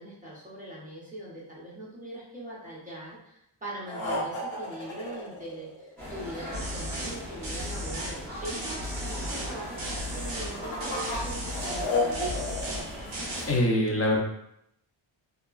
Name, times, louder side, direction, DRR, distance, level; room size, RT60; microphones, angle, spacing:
voice 1, 0.0-8.2 8.4-12.4, right 1 dB, 15° right, -7 dB, 0.6 m, -41 dB
sound 1, 3.9-6.1 10.2-12.8, left 2 dB, 75° left, 0.9 m, -31 dB
sound 2, 6.0-13.6, equal, 5° left, 0.9 m, -40 dB
sound 3, 6.5-7.2 7.4-8.2 8.4-9.5 9.8-10.5 10.8-11.9 12.1-12.8 13.1-13.4, equal, 55° right, 0.9 m, -35 dB
voice 2, 13.4-14.2, left 1 dB, 30° left, -1 dB, 0.5 m, -24 dB
2.8 x 2.3 x 2.3 m, 0.77 s
wide cardioid pair, 180°, 47 cm